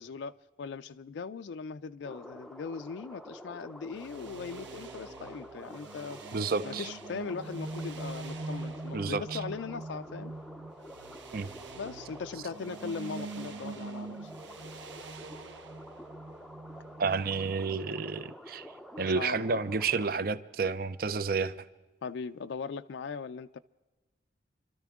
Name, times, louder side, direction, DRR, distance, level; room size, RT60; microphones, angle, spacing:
voice 1, 0.0-6.2 6.6-10.3 11.8-14.3 19.2-19.6 22.0-23.6, left 5 dB, 70° left, 9 dB, 0.4 m, -39 dB
sound 1, 2.0-20.1, equal, ahead, 0.5 m, -49 dB
sound 2, 3.9-17.5, right 3 dB, 75° right, 0.9 m, -43 dB
voice 2, 6.3-6.9 8.9-9.4 11.3-11.5 17.0-18.7 19.0-21.5, right 4 dB, 50° right, 15 dB, 0.5 m, -30 dB
27.0 x 13.0 x 3.6 m, 1.2 s
head